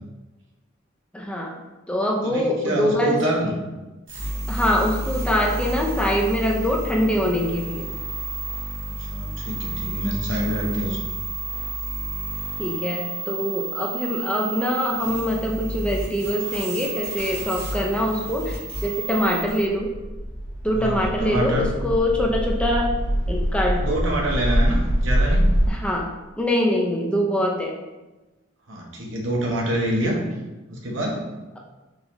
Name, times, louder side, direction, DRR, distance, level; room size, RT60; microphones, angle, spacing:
voice 1, 1.1-1.6 1.9-3.2 4.5-7.9 12.6-19.9 20.6-22.9 23.3-24.0 25.7-27.8, equal, 5° left, 0 dB, 0.3 m, -24 dB
voice 2, 2.2-3.6 9.0-11.1 20.8-21.8 23.7-25.4 28.7-30.2 30.7-31.2, right 1 dB, 75° right, -2 dB, 0.9 m, -26 dB
sound 1, 4.1-19.7, right 2 dB, 90° right, 1.4 m, -31 dB
sound 2, 19.1-25.7, equal, 65° left, 1.3 m, -24 dB
3.8 x 2.9 x 3.0 m, 1.1 s
head